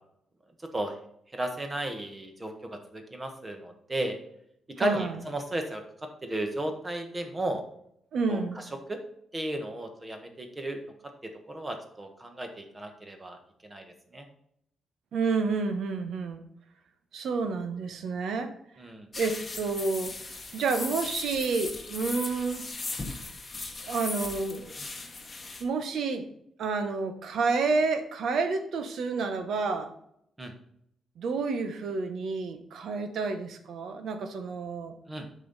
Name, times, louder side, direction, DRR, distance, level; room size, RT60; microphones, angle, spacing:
voice 1, 1.3-4.1 4.8-5.8 6.2-7.6 8.3-8.4 8.9-9.0 9.3-10.8 11.5-13.4 13.6-13.8 14.1-14.3 18.8-19.1 30.4-30.5 35.1-35.2, right 1 dB, 20° right, 5 dB, 1.2 m, -34 dB
voice 2, 4.8-5.2 8.1-8.6 15.1-16.4 17.1-18.5 19.2-22.6 23.8-24.7 25.6-26.3 26.6-29.9 31.2-34.9, right 4 dB, 70° right, 8 dB, 1.1 m, -29 dB
sound 1, 19.1-25.6, left 3 dB, 20° left, 1.2 m, -38 dB
8.3 x 5.5 x 4.1 m, 0.73 s
wide cardioid pair, 160°, 0 cm